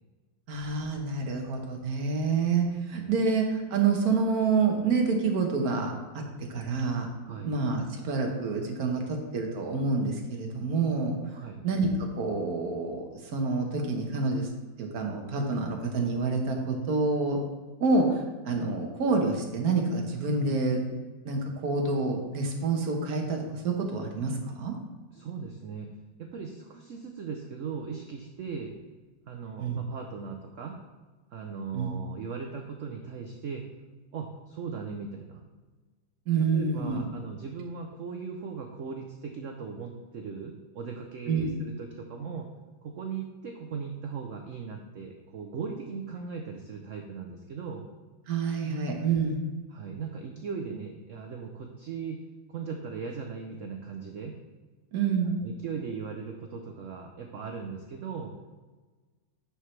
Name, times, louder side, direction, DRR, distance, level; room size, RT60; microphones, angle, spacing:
voice 1, 0.5-6.2 6.5-7.1 7.4-11.2 11.6-11.9 12.2-14.5 14.8-17.4 17.8-20.8 21.2-24.7 29.6-29.8 31.7-31.9 36.3-37.1 41.3-41.6 48.3-49.4 54.9-55.4, right 4 dB, 55° right, 2 dB, 1.4 m, -28 dB
voice 2, 11.3-11.6 20.4-20.6 25.1-25.9 26.2-28.7 29.2-30.8 31.3-33.7 34.1-35.4 36.5-42.5 42.8-47.9 49.7-52.2 52.5-54.4 55.4-58.3, right 5 dB, 85° right, 3 dB, 0.6 m, -38 dB
10.0 x 4.6 x 3.2 m, 1.3 s
omnidirectional pair, 2.1 m